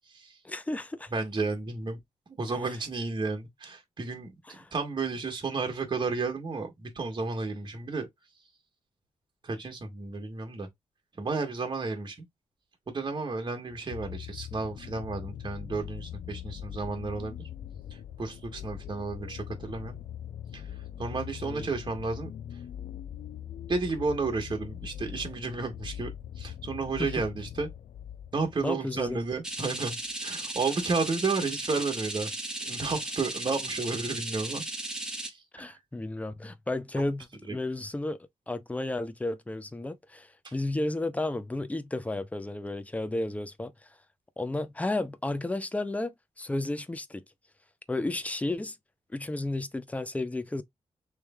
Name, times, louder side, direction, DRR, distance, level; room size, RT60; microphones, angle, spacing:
voice 1, 0.4-1.1 4.5-4.7 21.4-21.7 27.0-27.1 28.6-29.2 35.5-38.2 38.5-43.7 44.4-47.2 47.9-48.8 49.1-50.6, left 2 dB, 10° left, 0.5 m, -33 dB
voice 2, 1.1-2.0 2.4-8.1 9.4-10.7 11.2-12.3 12.9-17.4 18.2-20.0 20.5-20.7 21.0-22.3 23.7-26.1 26.4-27.7 28.3-32.3 32.6-34.6 35.2-35.7 37.5-37.6 40.4-40.5, right 4 dB, 40° right, 1.3 m, -32 dB
sound 1, 13.7-29.3 30.1-30.2, left 10 dB, 70° left, 0.4 m, -42 dB
sound 2, 29.4-35.3, right 2 dB, 5° right, 1.2 m, -36 dB
3.2 x 3.2 x 3.5 m
wide cardioid pair, 105°, 12 cm